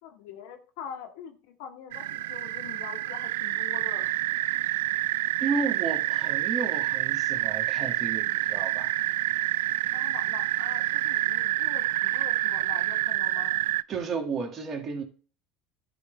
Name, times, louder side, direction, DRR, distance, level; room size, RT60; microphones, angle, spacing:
voice 1, 0.0-4.2 9.9-13.6, left 8 dB, 65° left, 2.0 m, -44 dB
sound 1, 1.9-13.8, right 16 dB, 70° right, 0.3 m, -28 dB
voice 2, 5.4-8.9 13.9-15.0, right 4 dB, 40° right, 2.3 m, -32 dB
12.5 x 5.1 x 3.5 m
hypercardioid pair, 75°, 0 cm